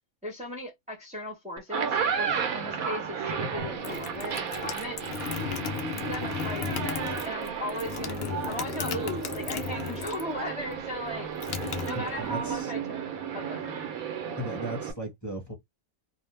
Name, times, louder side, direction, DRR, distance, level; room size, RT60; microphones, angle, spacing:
voice 1, 0.2-5.0 6.0-11.3 11.9-12.8 13.3-13.8, left 1 dB, 5° right, 0.6 m, -37 dB
sound 1, 1.6-14.9, right 7 dB, 85° right, 1.2 m, -33 dB
sound 2, 3.6-10.4 10.6-12.5, left 7 dB, 60° left, 0.6 m, -35 dB
voice 2, 11.9-12.7 14.4-15.5, right 1 dB, 15° left, 0.9 m, -36 dB
2.6 x 2.1 x 3.2 m
omnidirectional pair, 1.5 m